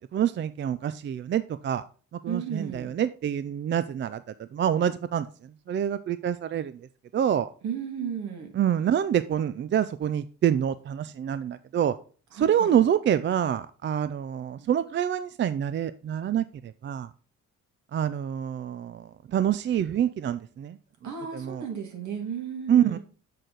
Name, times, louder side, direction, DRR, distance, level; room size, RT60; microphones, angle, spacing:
voice 1, 0.1-1.8 2.2-6.8 7.1-7.5 8.5-11.9 12.3-17.1 17.9-20.8 21.3-21.6 22.7-23.0, right 9 dB, 40° right, 14 dB, 0.4 m, -26 dB
voice 2, 2.3-2.9 7.6-8.5 12.4-12.7 21.0-23.0, right 7 dB, 70° right, 4 dB, 2.0 m, -34 dB
6.5 x 6.5 x 3.8 m, 0.39 s
cardioid pair, 90°, 30 cm